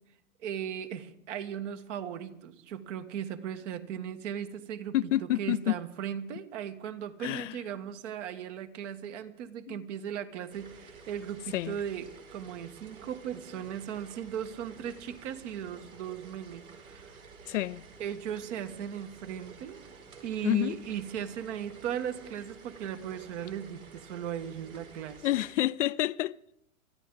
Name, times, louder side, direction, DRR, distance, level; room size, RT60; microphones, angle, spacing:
voice 1, 0.4-17.2 18.0-19.8 20.2-25.3, right 9 dB, 55° right, 1.6 m, -37 dB
voice 2, 4.9-5.7 7.2-7.6 9.7-9.9 11.5-11.8 17.5-17.8 20.4-20.8 25.2-26.4, left 15 dB, 60° left, 0.5 m, -28 dB
sound 1, 10.5-25.5, right 5 dB, 85° right, 4.3 m, -51 dB
23.5 x 13.5 x 3.9 m
hypercardioid pair, 110°, 42 cm